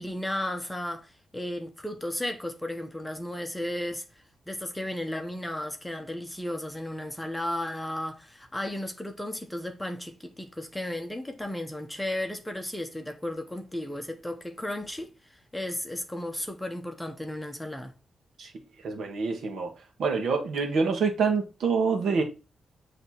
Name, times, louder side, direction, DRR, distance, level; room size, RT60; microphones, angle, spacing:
voice 1, 0.0-4.0 4.5-15.1 15.5-17.9, left 1 dB, 5° left, 0.8 m, -34 dB
voice 2, 18.8-19.7 20.0-22.2, right 5 dB, 70° right, 1.6 m, -26 dB
8.2 x 3.3 x 4.3 m
wide cardioid pair, 165°, 0 cm